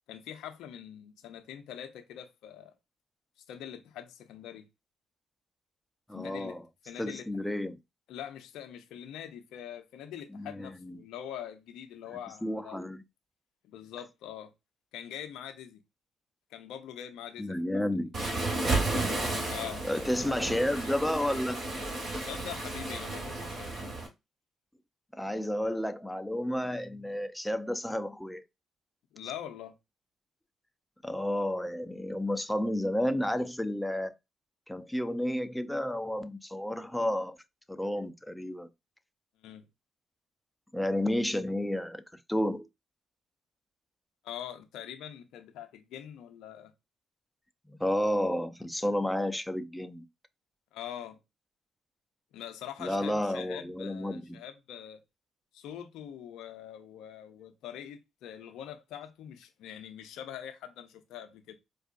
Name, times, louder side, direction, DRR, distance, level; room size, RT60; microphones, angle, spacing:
voice 1, 0.1-2.7 3.5-4.7 6.1-6.6 6.9-7.3 8.1-12.8 13.6-14.5 14.9-15.8 16.5-17.6 19.5-19.9 20.3-20.4 22.2-23.7 29.1-29.7 39.4-39.6 44.2-46.7 50.7-51.2 52.3-55.0 55.5-61.6, left 10 dB, 75° left, 0.6 m, -43 dB
voice 2, 6.1-6.6 7.0-7.8 10.3-11.0 12.4-13.0 17.4-18.1 19.4-19.5 19.8-21.6 25.1-28.4 31.0-34.2 34.7-37.4 37.7-38.7 40.7-42.0 42.3-42.7 47.7-50.1 52.8-54.4, left 1 dB, 5° left, 0.6 m, -31 dB
Waves surf, 18.1-24.1, right 2 dB, 55° right, 1.9 m, -33 dB
4.6 x 2.5 x 2.5 m
hypercardioid pair, 50°, 0 cm